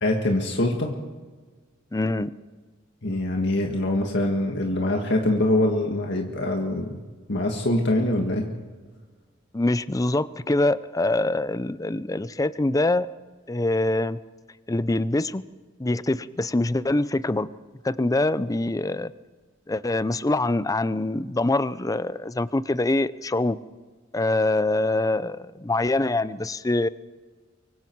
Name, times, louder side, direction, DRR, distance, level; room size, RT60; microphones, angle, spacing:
voice 1, 0.0-1.0 3.0-7.0 7.3-8.5, left 1 dB, 65° left, 1 dB, 1.8 m, -24 dB
voice 2, 1.9-2.3 9.5-13.1 13.5-14.2 14.7-15.4 15.8-17.5 17.8-19.1 19.7-23.6 24.1-26.9, left 2 dB, 20° left, 16 dB, 0.5 m, -24 dB
24.5 x 24.0 x 4.7 m, 1.4 s
head